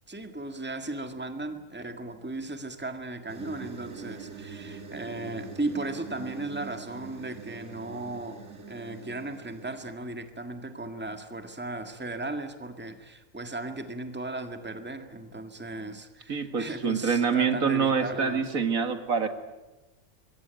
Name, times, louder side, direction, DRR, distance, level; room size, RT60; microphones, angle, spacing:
voice 1, 0.1-18.5, right 2 dB, 5° right, 7 dB, 1.8 m, -36 dB
sound 1, 3.3-10.0, right 5 dB, 55° right, 2.2 m, -44 dB
voice 2, 16.3-19.3, right 6 dB, 70° right, 8 dB, 2.3 m, -26 dB
25.5 x 22.5 x 9.1 m, 1.1 s
omnidirectional pair, 1.5 m